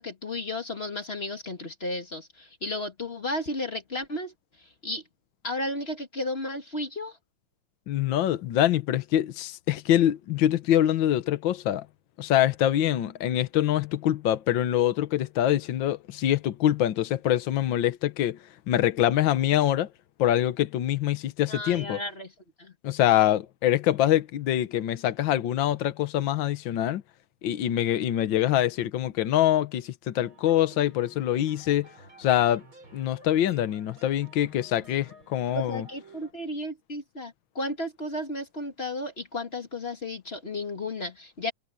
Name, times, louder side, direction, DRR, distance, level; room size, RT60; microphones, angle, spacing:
voice 1, 0.0-5.0 5.4-7.2 21.5-22.3 22.6-22.7 35.5-41.5, left 1 dB, 25° left, 1.6 m, -33 dB
voice 2, 7.9-11.9 12.2-18.4 18.7-19.9 20.2-22.0 22.8-27.0 27.4-31.9 32.2-32.6 32.9-35.9, left 12 dB, 85° left, 1.0 m, -24 dB
sound 1, 30.1-36.3, right 1 dB, 40° right, 7.8 m, -52 dB
omnidirectional pair, 3.5 m